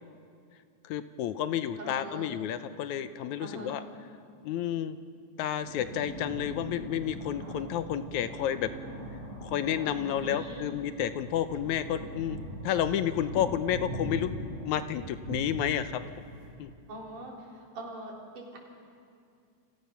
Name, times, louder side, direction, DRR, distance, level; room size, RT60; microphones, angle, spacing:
voice 1, 0.8-3.8 4.4-5.0 5.4-8.7 9.4-12.4 12.6-14.3 14.6-16.0 16.6-16.7, left 10 dB, 75° left, 11 dB, 2.1 m, -31 dB
voice 2, 1.8-2.3 3.4-3.8 10.0-10.7 16.9-18.6, right 1 dB, 85° right, -1 dB, 5.4 m, -43 dB
sound 1, 5.6-16.5, right 1 dB, 45° right, 5.2 m, -41 dB
30.0 x 24.0 x 5.8 m, 2.4 s
omnidirectional pair, 3.5 m